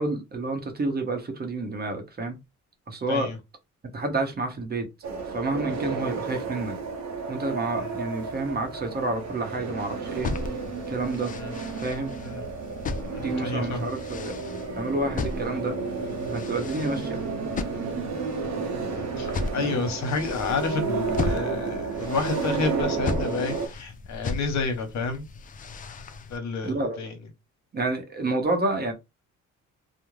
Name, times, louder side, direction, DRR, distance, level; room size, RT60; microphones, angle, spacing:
voice 1, 0.0-2.4 2.9-3.3 3.9-4.9 5.2-6.8 7.3-10.3 10.9-11.3 11.8-12.1 13.2-14.4 14.8-15.8 16.3-17.2 19.6-19.7 26.6-27.0 27.7-28.9, right 2 dB, 30° right, 0.8 m, -29 dB
sound 1, 5.0-23.7, right 4 dB, 65° right, 0.7 m, -32 dB
sound 2, 10.1-26.4, left 4 dB, 30° left, 0.3 m, -36 dB
voice 2, 13.1-13.9 19.2-25.3 26.3-27.2, left 4 dB, 65° left, 0.9 m, -30 dB
2.4 x 2.0 x 3.1 m
cardioid pair, 90°, 30 cm